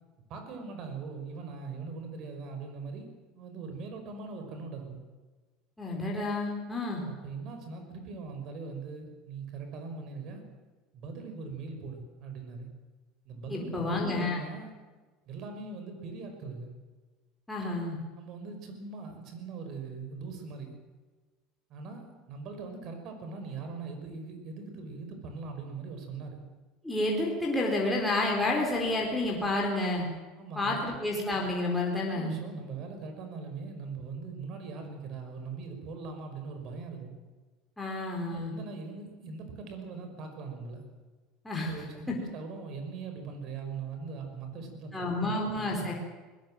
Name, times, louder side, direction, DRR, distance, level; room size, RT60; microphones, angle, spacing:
voice 1, 0.3-3.1 3.3-5.0 7.0-10.4 10.9-12.7 13.3-14.7 15.3-16.7 18.2-20.7 21.7-26.4 30.4-30.9 32.1-37.1 38.3-40.8 41.6-45.9, right 4 dB, 45° right, 5 dB, 5.5 m, -41 dB
voice 2, 5.8-7.0 13.5-14.4 17.5-18.0 26.8-30.1 30.6-32.3 37.8-38.5 41.4-41.7 44.9-45.9, left 2 dB, 5° left, -2 dB, 4.2 m, -30 dB
22.0 x 20.0 x 7.7 m, 1.3 s
cardioid pair, 150°, 0 cm